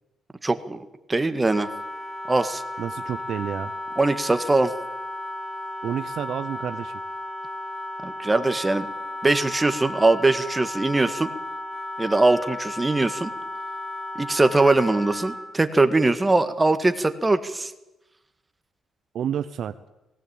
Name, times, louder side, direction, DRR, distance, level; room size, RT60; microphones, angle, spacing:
voice 1, 0.4-1.7 2.3-2.6 4.0-4.7 8.0-8.9 9.2-11.3 12.0-13.3 14.1-17.7, right 2 dB, 20° right, 10 dB, 1.7 m, -21 dB
Wind instrument woodwind instrument, 1.5-15.6, left 1 dB, 5° left, 1.5 m, -34 dB
voice 2, 2.8-3.7 5.8-7.0 19.1-19.9, right 9 dB, 65° right, 11 dB, 0.8 m, -30 dB
18.0 x 18.0 x 8.8 m, 0.94 s
cardioid pair, 90°, 0 cm